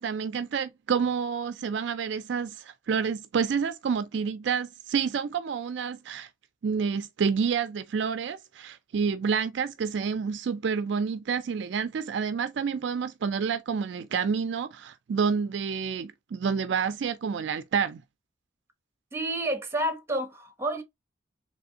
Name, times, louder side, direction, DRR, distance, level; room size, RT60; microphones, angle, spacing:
voice 1, 0.0-6.3 6.6-18.0, right 6 dB, 65° right, 0.4 m, -29 dB
voice 2, 19.1-20.8, right 1 dB, 15° right, 0.9 m, -29 dB
3.4 x 3.1 x 2.7 m
head